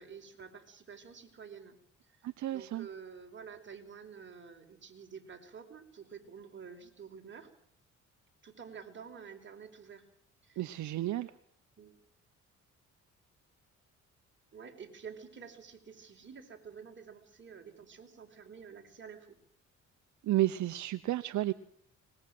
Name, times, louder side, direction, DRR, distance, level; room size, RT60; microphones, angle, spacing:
voice 1, 0.0-1.8 2.1-2.2 2.5-7.5 8.4-10.0 10.4-10.9 11.8-12.0 14.5-19.4, right 6 dB, 40° right, 3 dB, 4.6 m, -49 dB
voice 2, 2.2-2.9 10.6-11.3 20.2-21.5, right 15 dB, 70° right, 12 dB, 0.9 m, -32 dB
24.0 x 20.5 x 7.7 m, 0.63 s
cardioid pair, 90°, 30 cm